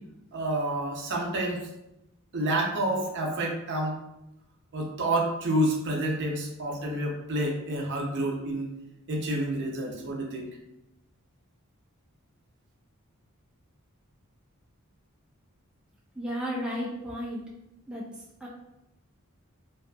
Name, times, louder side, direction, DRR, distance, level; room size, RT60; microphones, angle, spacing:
voice 1, 0.3-1.7 2.3-4.0 4.7-8.7 9.1-10.5, right 1 dB, 55° right, -1 dB, 0.5 m, -29 dB
voice 2, 16.2-17.4 17.9-18.5, equal, 5° right, -5 dB, 0.3 m, -34 dB
2.6 x 2.4 x 2.2 m, 0.87 s
head